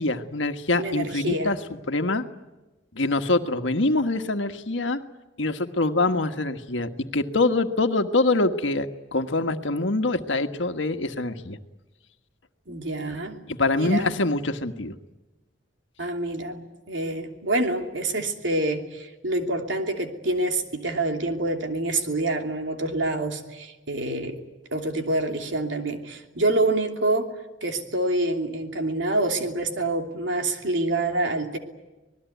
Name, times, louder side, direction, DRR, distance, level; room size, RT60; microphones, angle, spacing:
voice 1, 0.0-2.2 2.9-5.0 5.4-11.6 13.5-14.9, left 2 dB, 85° left, 7 dB, 1.5 m, -24 dB
voice 2, 0.8-1.5 12.7-13.4 13.7-14.2 16.0-16.6 16.9-24.4 24.7-27.3 27.6-31.6, right 2 dB, 80° right, 4 dB, 3.0 m, -26 dB
26.5 x 20.0 x 9.3 m, 1.1 s
head